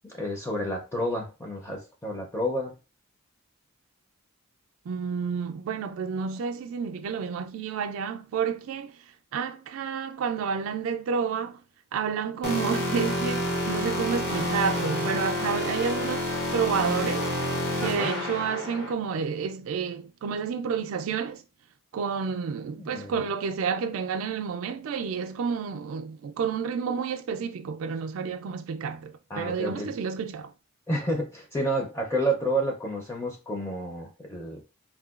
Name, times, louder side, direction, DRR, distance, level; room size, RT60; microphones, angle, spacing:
voice 1, 0.0-2.7 17.8-18.1 22.8-23.3 29.3-29.9 30.9-34.6, right 1 dB, 10° left, 0.5 m, -30 dB
voice 2, 4.9-8.9 9.3-11.6 11.9-17.3 17.8-21.4 21.9-30.5, right 6 dB, 70° right, 0.3 m, -30 dB
sound 1, 12.4-18.9, left 1 dB, 50° left, 0.8 m, -29 dB
3.6 x 2.2 x 2.3 m
head